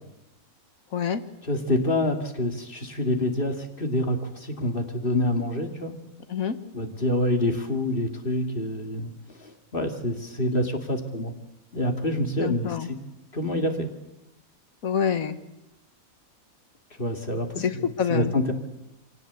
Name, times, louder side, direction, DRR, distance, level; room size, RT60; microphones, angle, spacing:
voice 1, 0.9-1.2 6.3-6.6 12.4-12.9 14.8-15.4 17.6-18.3, left 7 dB, 70° left, 10 dB, 1.7 m, -26 dB
voice 2, 1.5-5.9 6.7-11.3 11.7-13.0 13.3-13.9 17.0-17.6 18.1-18.5, left 1 dB, 35° left, 5 dB, 2.5 m, -27 dB
24.5 x 18.5 x 8.2 m, 0.94 s
omnidirectional pair, 1.5 m